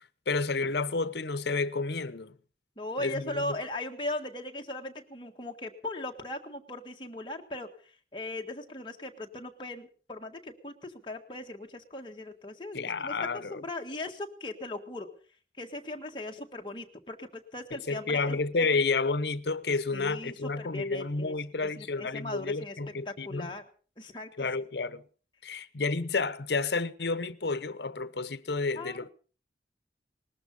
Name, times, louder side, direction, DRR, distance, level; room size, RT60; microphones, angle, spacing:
voice 1, 0.3-2.4 3.0-3.6 12.7-13.6 17.7-23.5 24.4-25.0 25.4-29.1, left 3 dB, 70° left, 0.9 m, -30 dB
voice 2, 2.8-7.7 8.1-15.1 15.6-18.4 19.9-21.3 21.6-22.7 23.0-23.6 24.0-24.5 28.8-29.1, left 2 dB, 25° left, 1.7 m, -38 dB
20.0 x 13.5 x 5.4 m
head